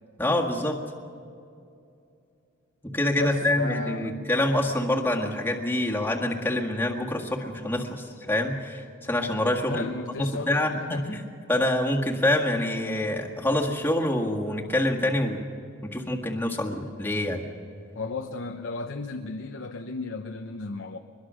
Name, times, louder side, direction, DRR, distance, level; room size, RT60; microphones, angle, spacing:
voice 1, 0.2-0.8 2.9-9.9 10.2-15.4 15.8-17.4, left 1 dB, 10° left, -2 dB, 1.8 m, -26 dB
voice 2, 3.2-4.2 9.7-11.3 17.9-21.0, left 3 dB, 60° left, 6 dB, 0.9 m, -34 dB
23.5 x 21.5 x 6.3 m, 2.5 s
head